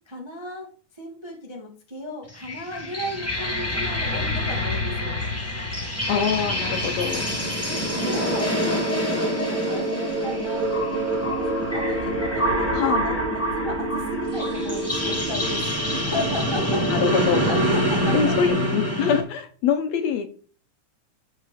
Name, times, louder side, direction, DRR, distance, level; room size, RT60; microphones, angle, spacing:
voice 1, 0.1-0.7 0.9-5.2 7.7-16.8 17.4-18.4, left 1 dB, 50° right, -1 dB, 0.3 m, -35 dB
sound 1, 2.3-19.2, equal, 5° left, 1.6 m, -26 dB
voice 2, 6.1-7.3 12.7-13.0 16.9-17.5 18.1-20.3, left 7 dB, 70° left, 8 dB, 1.8 m, -24 dB
sound 2, 6.6-18.5, right 2 dB, 70° right, 2.9 m, -30 dB
12.0 x 4.8 x 4.2 m, 0.43 s
omnidirectional pair, 3.6 m